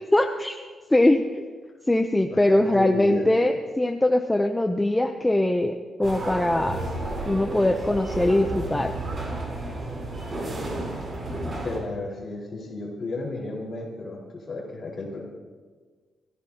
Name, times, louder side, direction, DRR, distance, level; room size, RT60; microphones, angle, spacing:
voice 1, 0.1-0.6 0.9-1.4 1.9-6.8 7.3-8.9, left 1 dB, 10° left, 5 dB, 0.5 m, -22 dB
voice 2, 2.3-3.3 11.6-15.2, left 2 dB, 35° left, -3 dB, 4.5 m, -33 dB
sound 1, 6.0-11.8, right 2 dB, 30° right, 3.6 m, -32 dB
24.5 x 16.5 x 2.8 m, 1.5 s
wide cardioid pair, 170°, 0 cm